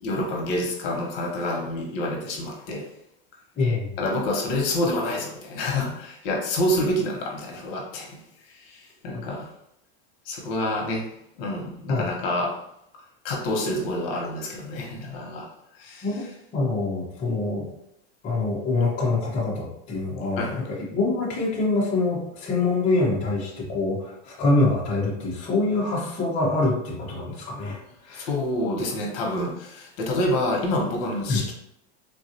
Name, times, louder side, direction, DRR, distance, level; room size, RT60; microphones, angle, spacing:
voice 1, 0.0-2.9 4.0-8.2 8.5-9.5 10.3-11.1 11.4-12.6 13.2-15.5 15.8-16.1 17.2-17.4 20.4-20.6 28.1-31.5, left 1 dB, 65° left, 0 dB, 0.9 m, -27 dB
voice 2, 3.6-3.9 9.1-9.3 11.9-12.1 16.0-17.7 18.2-28.3 31.3-31.4, left 2 dB, 25° left, -5 dB, 0.7 m, -25 dB
3.5 x 2.3 x 2.7 m, 0.80 s
supercardioid pair, 170°, 32 cm